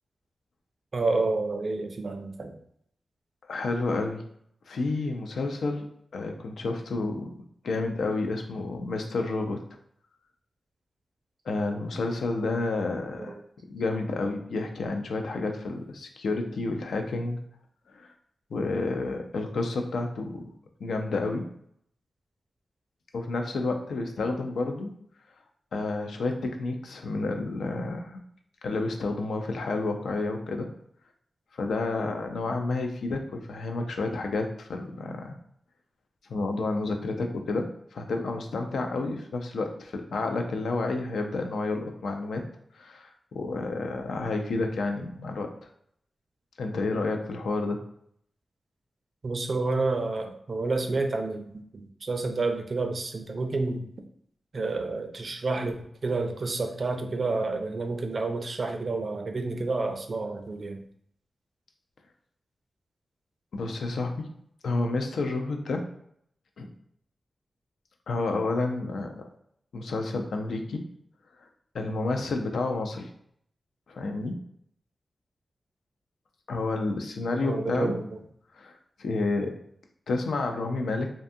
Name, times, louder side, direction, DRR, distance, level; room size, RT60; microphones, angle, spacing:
voice 1, 0.9-2.6 49.2-53.8 54.5-60.8 77.4-78.0, right 3 dB, 60° right, 5 dB, 0.4 m, -29 dB
voice 2, 3.5-4.2 4.7-5.9 6.1-7.3 7.6-9.6 11.5-13.3 13.7-17.4 17.9-18.1 18.5-20.5 20.8-21.5 23.1-24.9 25.7-28.2 28.6-30.7 31.5-35.3 36.3-42.4 42.7-45.5 46.6-47.8 63.5-64.3 64.6-65.9 66.6-66.7 68.1-69.2 69.7-70.8 71.7-73.1 73.9-74.4 76.5-77.9 78.5-79.5 80.1-81.1, left 3 dB, 85° left, 4 dB, 0.3 m, -30 dB
2.6 x 2.2 x 2.6 m, 0.69 s
cardioid pair, 55°, 0 cm